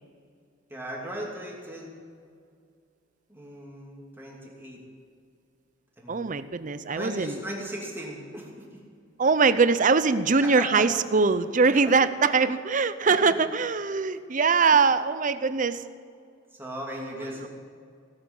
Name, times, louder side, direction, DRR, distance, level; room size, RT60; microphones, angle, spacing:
voice 1, 0.7-1.9 3.3-4.8 6.0-6.2 6.9-8.6 10.4-10.9 11.7-12.1 13.1-13.4 14.1-14.2 16.5-17.5, equal, 10° right, -3 dB, 2.7 m, -37 dB
voice 2, 6.1-7.3 9.2-15.8 17.4-17.5, right 4 dB, 40° right, 13 dB, 0.6 m, -22 dB
18.0 x 8.4 x 8.9 m, 2.2 s
head